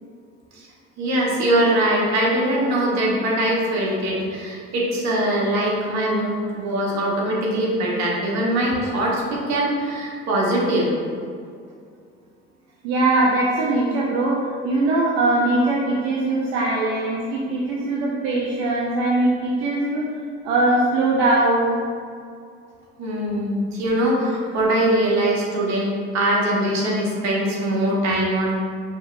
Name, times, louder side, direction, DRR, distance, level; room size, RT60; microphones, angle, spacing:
voice 1, 1.0-10.9 23.0-28.6, right 1 dB, 65° right, -3 dB, 1.2 m, -22 dB
voice 2, 12.8-14.4 14.6-20.0 20.4-21.8, right 2 dB, 80° right, -4 dB, 0.6 m, -21 dB
5.0 x 3.0 x 2.6 m, 2.3 s
supercardioid pair, 70°, 30 cm